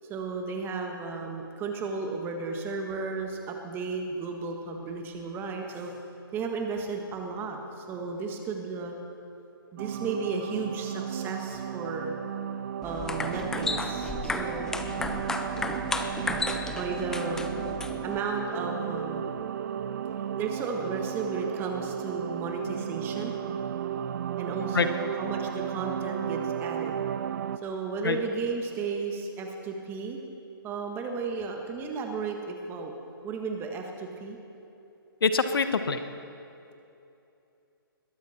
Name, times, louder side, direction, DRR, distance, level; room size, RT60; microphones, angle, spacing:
voice 1, 0.1-5.9 6.3-8.9 9.7-12.1 12.8-14.7 16.6-17.6 18.0-19.3 20.3-23.4 24.4-27.0 27.6-30.2 30.6-32.9 33.2-34.4, right 4 dB, 15° right, 3 dB, 1.6 m, -34 dB
sound 1, 9.8-27.6, right 9 dB, 50° right, 0.6 m, -34 dB
sound 2, 12.8-18.2, left 3 dB, 5° left, 0.5 m, -33 dB
voice 2, 35.2-36.0, left 5 dB, 75° left, 10 dB, 1.1 m, -24 dB
21.0 x 13.0 x 4.4 m, 2.7 s
hypercardioid pair, 145°, 12 cm